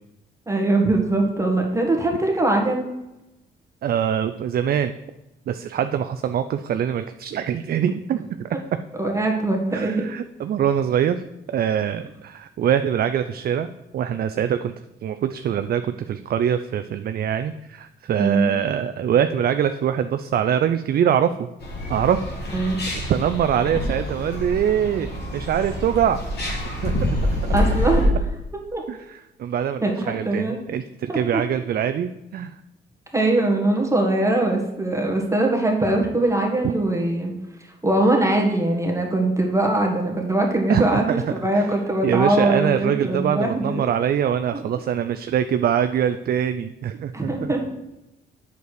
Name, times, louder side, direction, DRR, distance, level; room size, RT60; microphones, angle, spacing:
voice 1, 0.5-2.9 9.0-10.0 18.2-18.6 22.5-22.7 27.5-28.1 28.7-28.8 29.8-30.6 31.1-31.4 33.1-37.3 37.8-43.9 44.5-44.6 47.1-47.7, right 2 dB, 15° right, 1 dB, 1.7 m, -22 dB
voice 2, 3.8-4.9 5.5-8.6 9.7-14.7 15.0-21.5 21.9-22.2 22.9-27.5 28.9-32.6 40.7-41.2 41.5-41.7 42.0-47.5, right 9 dB, 50° right, 10 dB, 0.4 m, -24 dB
sound 1, 21.6-28.1, left 1 dB, 55° left, 2.8 m, -26 dB
8.0 x 6.7 x 4.7 m, 0.93 s
cardioid pair, 90°, 20 cm